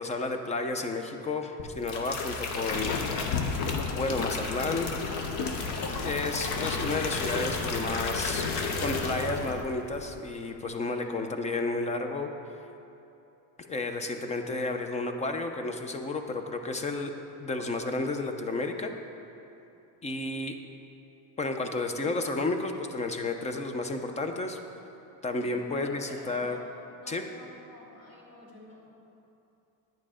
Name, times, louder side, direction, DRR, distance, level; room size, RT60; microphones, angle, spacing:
voice 1, 0.0-2.9 3.9-4.9 6.0-8.5 8.8-12.3 13.6-17.1 17.4-18.9 20.0-20.6 21.4-24.6 25.2-26.6 27.1-27.2, left 3 dB, 15° left, 6 dB, 0.6 m, -32 dB
sound 1, 1.6-9.6 9.9-10.3, left 3 dB, 85° left, 1.3 m, -34 dB
Subway metro underground, 2.7-9.6, left 6 dB, 55° left, 0.7 m, -35 dB
voice 2, 25.4-26.6 27.0-28.9, left 1 dB, 40° left, -4 dB, 2.7 m, -50 dB
10.5 x 9.8 x 5.0 m, 2.8 s
cardioid pair, 155°, 39 cm